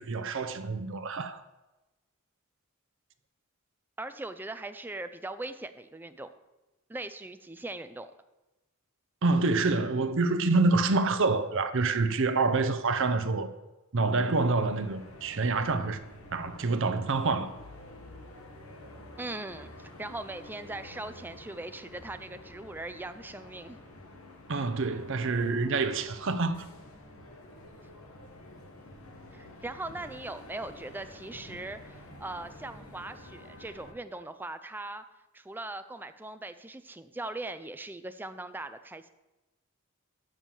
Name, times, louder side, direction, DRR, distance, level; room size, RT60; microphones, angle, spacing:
voice 1, 0.0-1.4 9.2-13.5 13.9-16.0 16.3-17.5 24.5-26.7, right 3 dB, 60° right, 0.7 m, -27 dB
voice 2, 4.0-6.3 6.9-8.1 19.2-23.8 29.3-35.0 35.3-39.1, right 2 dB, 10° right, 0.4 m, -40 dB
sound 1, 14.5-33.9, left 1 dB, 80° left, 1.5 m, -49 dB
7.0 x 6.3 x 7.5 m
head